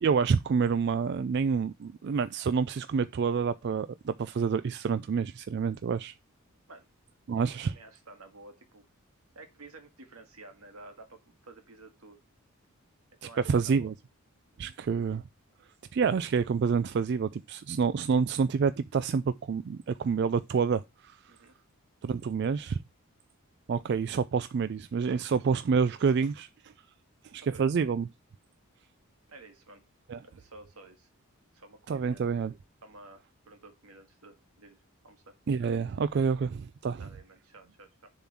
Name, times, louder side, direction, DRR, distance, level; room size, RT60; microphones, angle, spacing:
voice 1, 0.0-6.1 7.3-7.7 13.4-13.9 14.6-15.2 15.9-21.2 22.0-22.8 23.7-26.7 27.3-28.1 30.1-30.2 31.9-32.5 35.5-37.1, right 5 dB, 50° right, 0.3 m, -28 dB
voice 2, 7.6-8.9 9.4-12.2 13.2-13.9 14.5-14.7 21.3-21.5 27.4-27.6 29.3-29.8 30.2-31.1 31.5-32.2 32.8-35.3 37.0-38.1, right 2 dB, 80° right, 1.8 m, -52 dB
7.0 x 3.8 x 5.9 m
head